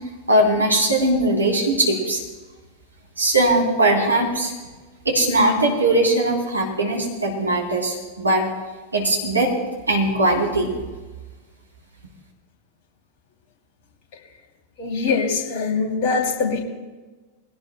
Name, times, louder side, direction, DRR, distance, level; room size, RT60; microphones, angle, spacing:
voice 1, 0.3-2.2 3.2-4.5 5.0-8.5 8.9-9.5 9.9-10.7, right 1 dB, 80° right, -1 dB, 3.3 m, -20 dB
voice 2, 14.8-16.6, left 4 dB, 45° left, 2 dB, 2.8 m, -23 dB
22.5 x 17.0 x 2.2 m, 1.3 s
figure-of-eight pair, 90°, 0 cm